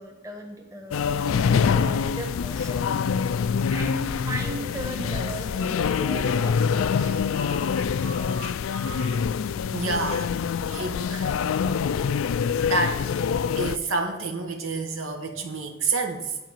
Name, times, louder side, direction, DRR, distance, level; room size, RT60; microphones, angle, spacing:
voice 1, 0.0-3.3 3.7-7.2, right 1 dB, 15° right, 0 dB, 1.5 m, -38 dB
sound 1, 0.9-13.8, left 6 dB, 80° left, 0.4 m, -25 dB
sound 2, 4.3-9.3, right 2 dB, 60° right, 1.1 m, -41 dB
voice 2, 9.7-10.3 10.7-11.4 12.7-13.0 13.6-16.3, right 3 dB, 80° right, 3 dB, 1.3 m, -28 dB
9.5 x 5.0 x 7.4 m, 1.0 s
head